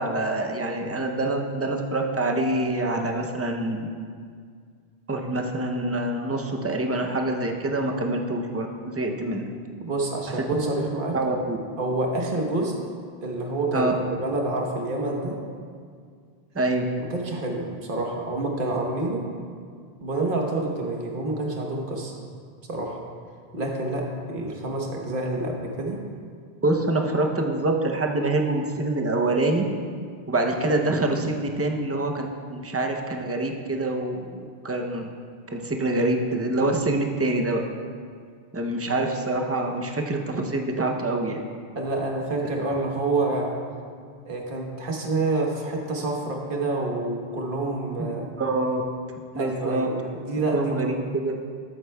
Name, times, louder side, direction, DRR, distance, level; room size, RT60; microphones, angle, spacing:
voice 1, 0.0-3.9 5.1-9.4 10.4-10.5 11.1-11.6 13.7-13.9 16.5-16.9 26.6-29.6 30.3-35.1 35.5-37.6 38.5-41.4 48.0-48.1 48.4-48.8 49.3-49.9 50.5-51.3, right 2 dB, 20° right, 3 dB, 0.4 m, -25 dB
voice 2, 9.8-11.2 11.8-12.8 13.2-13.9 14.2-15.4 17.1-19.3 20.0-22.2 22.7-23.0 23.5-26.0 41.7-43.6 44.3-48.3 49.3-50.9, right 2 dB, 55° right, 0 dB, 1.3 m, -28 dB
13.0 x 8.0 x 2.2 m, 2.1 s
omnidirectional pair, 1.1 m